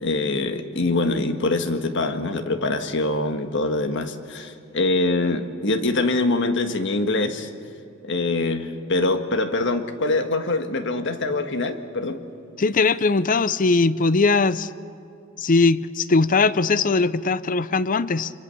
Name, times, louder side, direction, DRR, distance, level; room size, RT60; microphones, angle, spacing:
voice 1, 0.0-7.5 8.1-12.2, left 2 dB, 60° left, 7 dB, 1.6 m, -24 dB
voice 2, 12.6-14.7 15.4-18.3, left 3 dB, 40° left, 16 dB, 0.6 m, -20 dB
26.5 x 23.0 x 7.0 m, 2.7 s
head